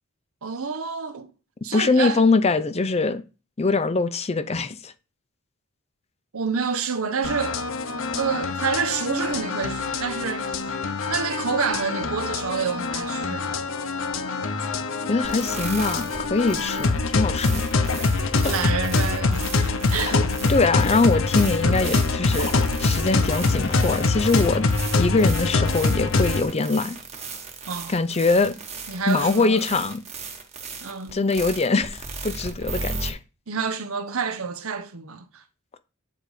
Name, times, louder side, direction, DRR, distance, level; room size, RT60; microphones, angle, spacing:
voice 1, 0.4-1.3 1.6-2.2 6.3-7.6 8.1-10.7 11.1-13.6 18.4-20.2 27.7-28.0 28.9-29.7 30.8-31.2 33.5-35.4, right 5 dB, 75° right, 0.9 m, -28 dB
voice 2, 1.7-3.2 3.6-4.9 15.1-17.6 18.4-18.5 19.9-20.1 20.5-24.7 25.0-27.0 27.9-28.5 29.1-30.0 31.1-33.2, left 3 dB, 30° left, 0.5 m, -23 dB
sound 1, 7.2-26.4, left 3 dB, 60° left, 0.8 m, -24 dB
sound 2, 15.2-33.1, right 4 dB, 30° right, 1.3 m, -36 dB
9.2 x 3.9 x 4.9 m
head